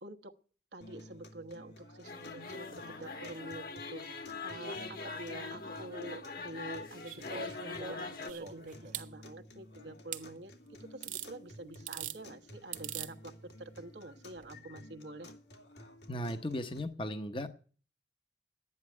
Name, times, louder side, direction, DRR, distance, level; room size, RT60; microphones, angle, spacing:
voice 1, 0.0-0.3 0.7-15.3, right 2 dB, 85° right, 5 dB, 1.2 m, -47 dB
sound 1, 0.8-16.8, left 1 dB, 80° left, 2.8 m, -54 dB
sound 2, 2.0-8.3, left 3 dB, 55° left, 1.6 m, -42 dB
sound 3, 7.0-9.1 10.1-10.2 11.0-11.3 11.7-12.2 12.7-13.1 14.4-14.5, right 8 dB, 45° right, 1.1 m, -42 dB
voice 2, 16.1-17.5, left 1 dB, 30° left, 9 dB, 0.8 m, -36 dB
11.5 x 9.7 x 9.6 m, 0.41 s
head